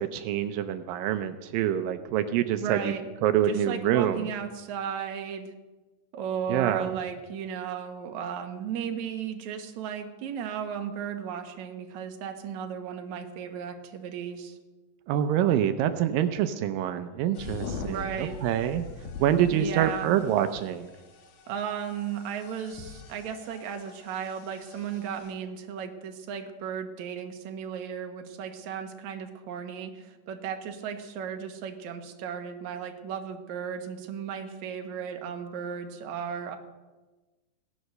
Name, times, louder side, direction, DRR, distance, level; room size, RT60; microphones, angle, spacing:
voice 1, 0.0-2.9 3.2-4.2 6.5-7.0 15.1-18.8 19.2-20.9, right 10 dB, 85° right, 9 dB, 2.5 m, -26 dB
voice 2, 2.6-3.0 3.4-5.5 6.1-14.6 17.8-18.4 19.5-20.2 21.5-36.6, right 7 dB, 60° right, 5 dB, 2.6 m, -35 dB
sound 1, 17.4-25.3, left 5 dB, 70° left, 2.9 m, -43 dB
17.5 x 11.0 x 6.6 m, 1.2 s
omnidirectional pair, 3.9 m